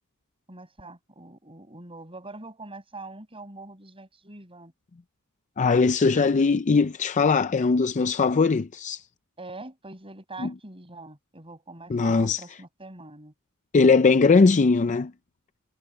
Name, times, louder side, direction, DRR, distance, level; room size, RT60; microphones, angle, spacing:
voice 1, 0.5-4.7 9.4-13.3, right 2 dB, 25° right, 7.9 m, -43 dB
voice 2, 5.6-9.0 10.4-10.5 11.9-12.4 13.7-15.1, left 4 dB, 35° left, 0.4 m, -20 dB
head